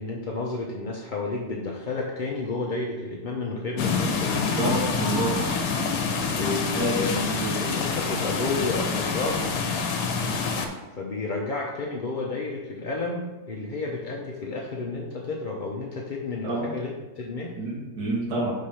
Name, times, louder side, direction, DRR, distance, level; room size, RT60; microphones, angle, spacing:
voice 1, 0.0-4.6 6.4-7.2 7.6-9.8 11.0-17.6, left 3 dB, 55° left, -2 dB, 0.5 m, -31 dB
sound 1, 3.8-10.7, left 4 dB, 80° left, 1.3 m, -26 dB
voice 2, 4.6-5.3 6.7-7.5 16.4-16.7 17.6-18.5, right 1 dB, 70° right, -4 dB, 2.2 m, -28 dB
5.0 x 3.9 x 5.7 m, 1.1 s
omnidirectional pair, 1.8 m